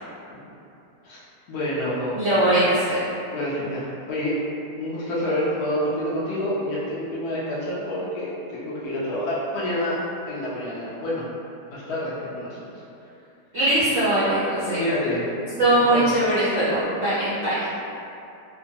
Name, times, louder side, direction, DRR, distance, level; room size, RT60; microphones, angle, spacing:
voice 1, 1.5-2.2 3.3-4.4 4.8-10.0 10.3-11.3 11.7-12.8 14.8-15.2 15.7-16.2, left 1 dB, 70° left, -7 dB, 1.0 m, -28 dB
voice 2, 2.2-3.0 13.5-14.8 15.6-17.7, right 1 dB, 70° right, -12 dB, 0.6 m, -21 dB
2.9 x 2.1 x 2.6 m, 2.7 s
omnidirectional pair, 1.8 m